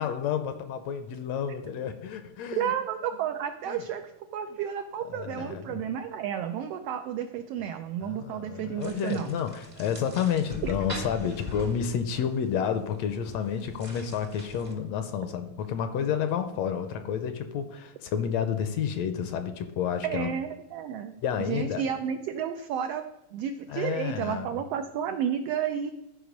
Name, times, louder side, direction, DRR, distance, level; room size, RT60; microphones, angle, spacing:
voice 1, 0.0-2.7 3.7-3.8 5.1-5.8 8.0-20.3 21.2-21.8 23.7-24.6, left 8 dB, 75° left, 8 dB, 1.7 m, -30 dB
voice 2, 2.6-4.0 4.3-9.3 10.6-10.7 20.0-21.2 21.5-23.0 23.3-25.9, right 9 dB, 90° right, 7 dB, 1.3 m, -31 dB
sound 1, 8.8-14.7, equal, 45° right, 0.4 m, -42 dB
13.0 x 5.0 x 5.1 m, 0.92 s
omnidirectional pair, 3.3 m